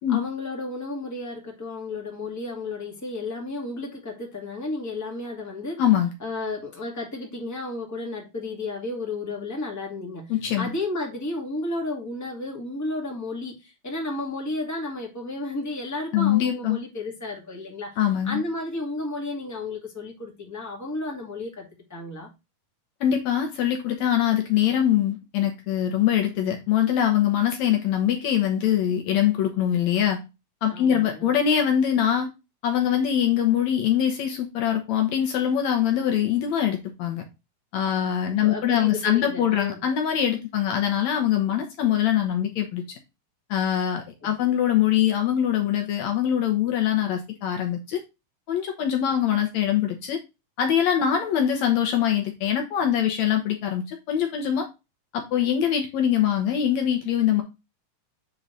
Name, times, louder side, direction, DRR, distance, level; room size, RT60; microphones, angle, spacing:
voice 1, 0.1-5.8 6.2-18.0 18.2-22.3 30.7-31.3 38.3-39.8 44.2-44.3, left 2 dB, 5° left, 1.9 m, -33 dB
voice 2, 5.8-6.1 10.3-10.7 16.1-16.8 18.0-18.4 23.0-30.2 30.6-32.3 32.6-37.2 37.7-42.8 43.5-48.0 48.5-50.2 50.6-54.7 55.1-57.4, left 10 dB, 70° left, 2.2 m, -23 dB
8.4 x 3.8 x 4.0 m
omnidirectional pair, 3.6 m